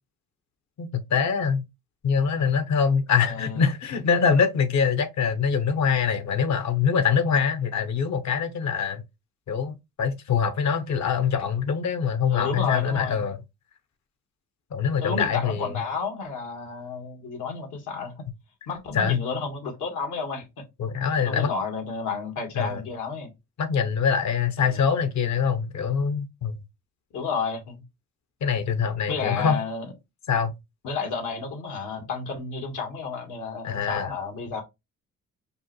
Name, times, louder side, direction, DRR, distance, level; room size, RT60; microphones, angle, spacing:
voice 1, 0.8-1.6 2.0-9.0 9.5-13.4 14.7-15.8 18.9-19.2 20.8-21.5 22.5-22.8 23.6-26.6 28.4-29.6 30.3-30.5 33.6-34.1, left 6 dB, 65° left, 0.9 m, -24 dB
voice 2, 3.2-3.6 12.3-13.2 15.0-18.3 18.7-20.6 21.2-23.3 24.6-24.8 27.1-27.8 29.1-29.9 30.8-34.6, left 5 dB, 85° left, 1.6 m, -31 dB
5.3 x 2.3 x 3.0 m
cardioid pair, 90°, 30 cm